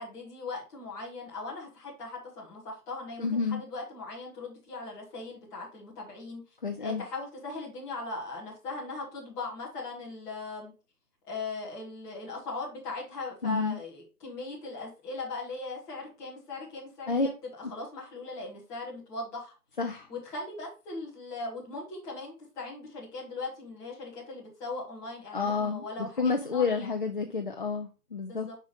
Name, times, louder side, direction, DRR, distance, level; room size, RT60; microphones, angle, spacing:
voice 1, 0.0-6.4 6.8-10.7 11.3-19.5 20.1-27.0 28.3-28.6, left 3 dB, 5° left, -6 dB, 0.8 m, -39 dB
voice 2, 3.2-3.6 6.6-7.0 13.4-13.8 17.1-17.3 19.8-20.1 25.3-28.5, left 5 dB, 35° left, 4 dB, 0.4 m, -29 dB
5.1 x 4.8 x 4.0 m, 0.32 s
figure-of-eight pair, 145°, 46 cm